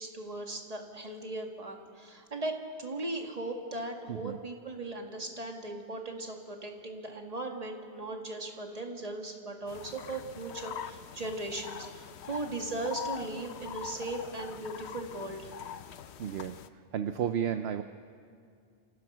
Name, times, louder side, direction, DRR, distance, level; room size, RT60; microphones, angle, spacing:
voice 1, 0.0-15.5, right 2 dB, 35° right, 2 dB, 1.9 m, -38 dB
voice 2, 4.1-4.4 16.2-16.6 16.9-17.8, right 9 dB, 65° right, 9 dB, 0.9 m, -32 dB
sound 1, 9.7-16.7, left 9 dB, 70° left, 0.9 m, -43 dB
28.0 x 15.5 x 6.2 m, 2.4 s
omnidirectional pair, 1.2 m